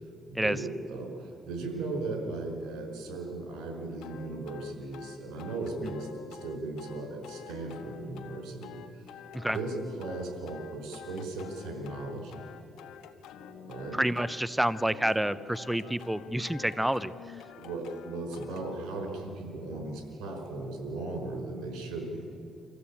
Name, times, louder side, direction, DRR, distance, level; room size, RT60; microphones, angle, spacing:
voice 1, 0.3-9.1 9.5-12.4 13.7-14.0 17.6-22.3, right 2 dB, 90° right, 3 dB, 5.0 m, -37 dB
sound 1, 4.0-18.8, left 7 dB, 90° left, 1.4 m, -47 dB
voice 2, 13.9-17.4, right 1 dB, 5° right, 16 dB, 0.6 m, -29 dB
25.5 x 15.5 x 8.6 m, 2.6 s
cardioid pair, 90°, 0 cm